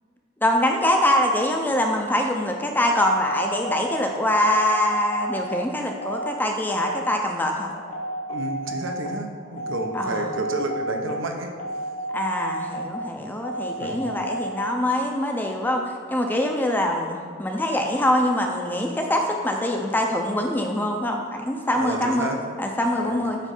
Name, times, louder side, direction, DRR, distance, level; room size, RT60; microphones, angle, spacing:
voice 1, 0.4-7.7 9.9-10.2 12.1-22.3 22.6-23.4, left 1 dB, 10° left, 2 dB, 0.5 m, -24 dB
sound 1, 2.9-14.9, right 1 dB, 45° left, 0.8 m, -32 dB
voice 2, 8.3-11.9 13.8-14.5 21.6-22.6 23.0-23.2, right 2 dB, 80° right, 3 dB, 0.8 m, -31 dB
8.2 x 3.2 x 5.3 m, 2.1 s
head